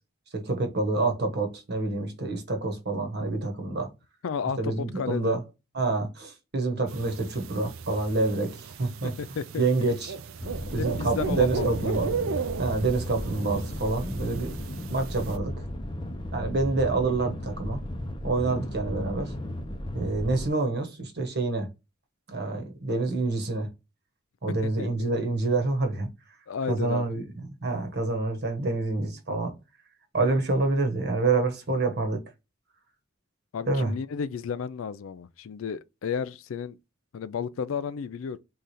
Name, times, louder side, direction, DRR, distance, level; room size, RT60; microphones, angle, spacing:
voice 1, 0.3-3.9 4.6-5.4 5.7-9.1 9.6-10.1 10.7-12.1 12.6-14.5 14.9-15.5 16.3-17.8 18.2-19.3 19.9-21.7 22.3-23.7 24.4-26.1 26.7-27.2 27.6-29.5 30.1-32.2 33.7-33.9, right 3 dB, 55° right, 1.2 m, -27 dB
voice 2, 4.2-5.4 9.0-9.6 10.8-11.9 24.6-24.9 26.5-27.1 33.5-36.8 37.1-38.4, left 6 dB, 70° left, 0.4 m, -33 dB
sound 1, 6.9-15.4, right 6 dB, 80° right, 0.5 m, -36 dB
sound 2, 10.4-20.5, left 1 dB, 25° left, 0.7 m, -35 dB
3.8 x 3.3 x 4.1 m
head